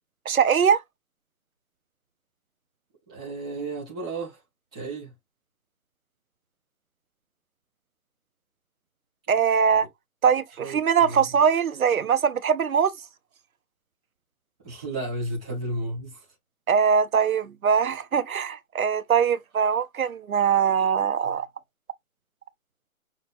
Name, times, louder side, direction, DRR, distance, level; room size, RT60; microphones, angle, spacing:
voice 1, 0.3-0.8 9.3-9.9 10.2-12.9 16.7-21.5, right 7 dB, 75° right, 0.9 m, -22 dB
voice 2, 3.1-4.4 4.7-5.1 10.6-11.3 14.6-16.1, right 2 dB, 5° right, 0.7 m, -33 dB
6.0 x 2.1 x 4.3 m
hypercardioid pair, 165°, 42 cm